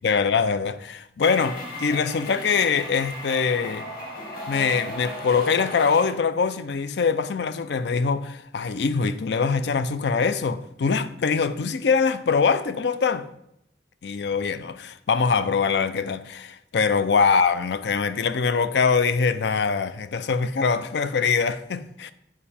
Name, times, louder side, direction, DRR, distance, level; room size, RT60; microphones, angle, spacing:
voice 1, 0.0-3.9 4.5-13.3 14.0-22.1, left 5 dB, 80° left, 0.4 m, -23 dB
sound 1, 1.2-6.2, left 1 dB, 55° left, 1.7 m, -36 dB
7.3 x 4.8 x 4.2 m
head